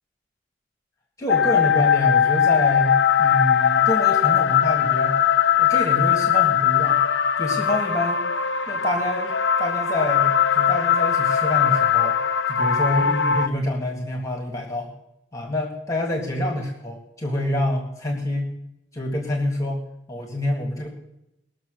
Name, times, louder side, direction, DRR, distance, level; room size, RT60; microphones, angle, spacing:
voice 1, 1.2-5.2 5.6-7.0 7.4-8.2 8.7-12.2 12.5-14.9 15.3-18.5 18.9-19.8 20.1-20.9, left 1 dB, 20° left, 1 dB, 1.9 m, -27 dB
sound 1, 1.3-13.5, left 8 dB, 75° left, 0.5 m, -20 dB
20.0 x 6.8 x 6.5 m, 0.87 s
head